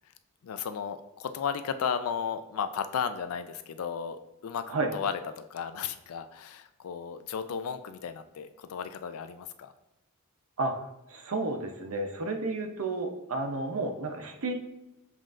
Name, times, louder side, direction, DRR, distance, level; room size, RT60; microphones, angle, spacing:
voice 1, 0.4-4.6 4.9-9.7, left 7 dB, 80° left, 10 dB, 0.4 m, -34 dB
voice 2, 11.1-14.5, right 2 dB, 80° right, 4 dB, 0.7 m, -31 dB
7.3 x 2.5 x 2.5 m, 0.92 s
head